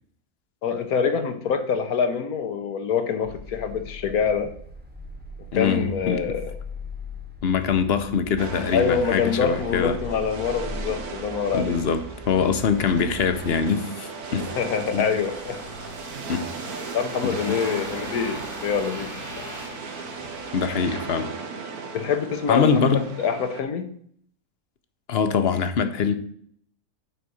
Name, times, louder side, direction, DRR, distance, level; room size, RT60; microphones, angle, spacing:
voice 1, 0.6-4.5 5.5-6.5 8.7-11.8 14.6-15.6 16.9-19.4 21.9-23.9, left 6 dB, 75° left, 1.3 m, -25 dB
sound 1, 3.2-13.6, left 1 dB, 5° right, 1.1 m, -40 dB
voice 2, 5.5-6.4 7.4-10.0 11.5-14.5 14.9-15.1 16.3-16.5 17.2-17.6 20.5-21.3 22.5-23.0 25.1-26.1, left 6 dB, 50° left, 0.9 m, -23 dB
sound 2, 8.4-23.6, right 4 dB, 85° right, 1.5 m, -37 dB
sound 3, 13.1-21.4 21.8-21.9, right 1 dB, 50° right, 2.2 m, -39 dB
9.0 x 4.1 x 6.3 m
omnidirectional pair, 1.6 m